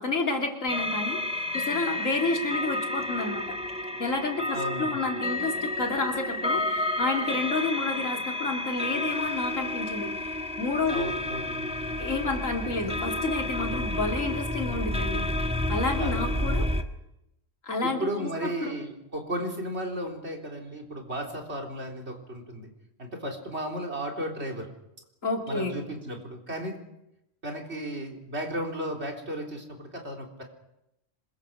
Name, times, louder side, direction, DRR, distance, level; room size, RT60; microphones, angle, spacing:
voice 1, 0.0-3.6 4.0-11.1 12.0-16.7 17.6-18.7 25.2-25.8, left 3 dB, 85° left, 2 dB, 3.4 m, -30 dB
sound 1, 0.7-16.8, left 1 dB, 5° right, 1.2 m, -30 dB
voice 2, 4.5-5.0 10.9-11.7 16.0-16.3 17.8-22.7 23.0-24.7 25.5-26.8 27.4-30.4, right 1 dB, 55° right, 1 dB, 4.2 m, -34 dB
26.0 x 22.0 x 6.4 m, 0.86 s
omnidirectional pair, 1.3 m